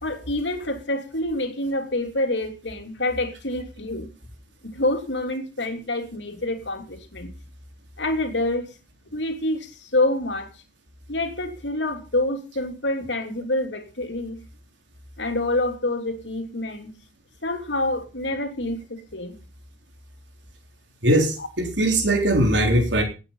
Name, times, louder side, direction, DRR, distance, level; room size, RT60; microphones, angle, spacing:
voice 1, 0.0-4.1 4.6-7.3 8.0-8.7 9.1-10.5 11.1-14.4 15.2-17.0 17.4-19.4 21.4-21.5, left 2 dB, 75° left, 5 dB, 3.1 m, -27 dB
voice 2, 21.0-23.0, right 1 dB, 85° right, 3 dB, 4.0 m, -20 dB
18.0 x 9.0 x 5.5 m, 0.32 s
head